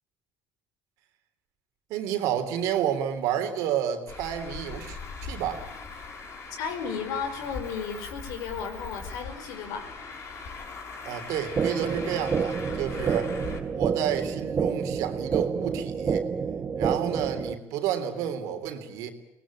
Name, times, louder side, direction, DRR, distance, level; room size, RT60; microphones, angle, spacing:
voice 1, 1.9-5.7 11.0-13.4 13.7-16.2 16.8-19.1, right 9 dB, 90° right, 7 dB, 3.4 m, -30 dB
Traffic noise roadway noise, 4.1-13.6, left 4 dB, 55° left, 6.4 m, -40 dB
voice 2, 6.6-9.9, left 6 dB, 90° left, 7 dB, 4.9 m, -34 dB
sound 1, 11.6-17.6, right 6 dB, 40° right, 1.5 m, -28 dB
24.0 x 19.5 x 8.7 m, 0.93 s
cardioid pair, 95°, 6 cm